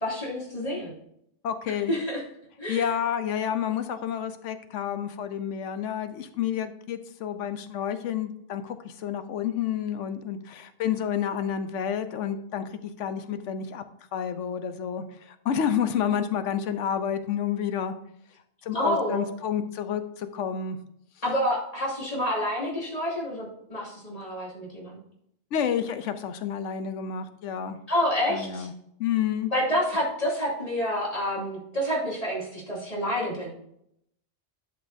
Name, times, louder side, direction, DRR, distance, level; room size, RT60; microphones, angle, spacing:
voice 1, 0.0-0.9 1.9-2.2 2.6-2.9 18.7-19.2 21.2-24.9 27.9-28.7 29.5-33.5, equal, 30° left, -5 dB, 2.7 m, -28 dB
voice 2, 1.4-1.9 2.7-12.7 13.0-13.8 14.1-17.9 18.6-20.8 25.5-27.8 28.3-28.7 29.0-29.5, left 8 dB, 85° left, 10 dB, 1.0 m, -29 dB
11.0 x 5.5 x 2.7 m, 0.76 s
omnidirectional pair, 1.2 m